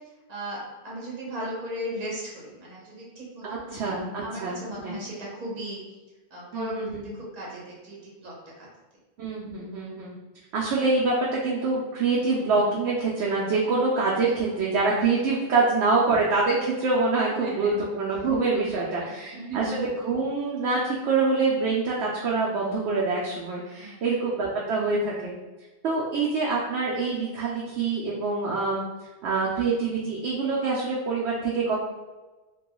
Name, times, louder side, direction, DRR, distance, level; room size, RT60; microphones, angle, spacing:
voice 1, 0.3-3.9 4.2-5.8 6.3-6.9 7.1-8.7 17.4-17.7 18.5-19.7 23.8-24.0, right 1 dB, 40° right, -5 dB, 1.0 m, -37 dB
voice 2, 3.4-4.6 4.8-4.9 6.5-7.1 9.2-10.1 10.5-25.3 25.8-28.8 29.2-31.8, right 3 dB, 80° right, -4 dB, 0.8 m, -25 dB
2.9 x 2.2 x 2.9 m, 1.2 s
omnidirectional pair, 1.1 m